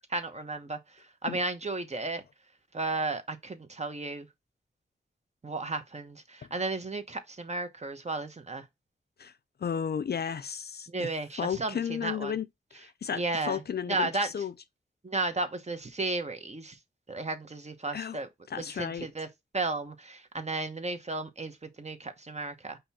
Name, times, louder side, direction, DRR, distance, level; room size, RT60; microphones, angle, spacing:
voice 1, 0.1-2.2 2.7-4.3 5.4-8.6 10.9-12.4 13.1-14.3 15.0-16.8 17.1-18.3 18.6-19.3 19.5-22.8, right 2 dB, 35° right, 1.0 m, -34 dB
voice 2, 9.6-11.1 11.4-14.5 17.9-18.2 18.5-19.1, left 7 dB, 55° left, 0.4 m, -34 dB
5.2 x 2.4 x 4.1 m
cardioid pair, 70°, 20 cm